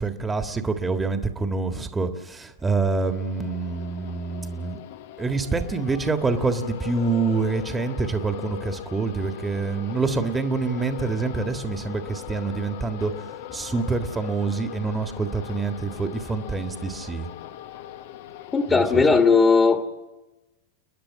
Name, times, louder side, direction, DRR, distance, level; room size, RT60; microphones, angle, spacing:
voice 1, 0.0-4.8 5.2-17.3 18.7-19.0, right 4 dB, 15° right, 6 dB, 1.6 m, -26 dB
sound 1, 3.0-19.2, left 11 dB, 65° left, 1.1 m, -40 dB
voice 2, 18.5-19.8, left 4 dB, 20° left, 5 dB, 1.7 m, -17 dB
30.0 x 10.0 x 9.4 m, 1.1 s
hypercardioid pair, 100°, 0 cm